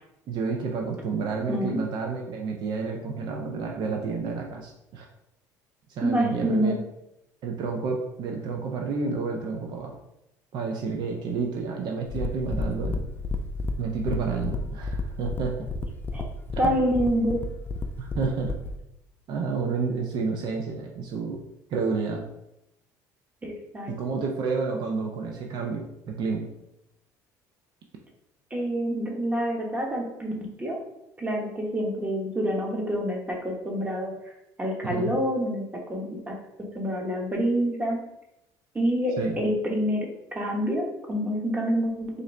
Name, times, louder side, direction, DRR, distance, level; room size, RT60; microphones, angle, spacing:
voice 1, 0.3-5.1 5.9-6.7 7.4-10.0 10.5-13.0 13.8-15.7 16.5-16.8 18.0-18.5 19.3-21.4 21.7-22.3 23.9-26.5 34.8-35.1 39.2-39.4, right 4 dB, 60° right, 1 dB, 0.6 m, -30 dB
voice 2, 1.5-1.8 6.0-6.8 16.1-16.3 16.6-17.4 23.4-23.9 28.5-30.3 30.6-30.8 31.2-34.1 34.6-35.6 35.9-36.3 36.7-38.0 38.7-42.1, equal, 20° right, -1 dB, 1.2 m, -27 dB
sound 1, 12.1-18.8, left 3 dB, 25° left, 0.4 m, -32 dB
3.8 x 2.6 x 3.2 m, 0.85 s
supercardioid pair, 80°, 8 cm